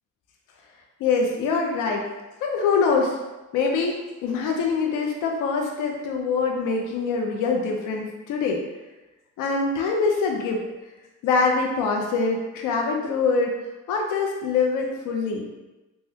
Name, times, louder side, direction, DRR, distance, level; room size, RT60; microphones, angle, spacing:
voice 1, 1.0-2.1 2.4-3.2 3.5-8.6 9.4-10.6 11.2-13.5 13.9-15.5, left 4 dB, 85° left, 1 dB, 0.5 m, -24 dB
3.4 x 2.2 x 2.7 m, 1.1 s
cardioid pair, 90°, 30 cm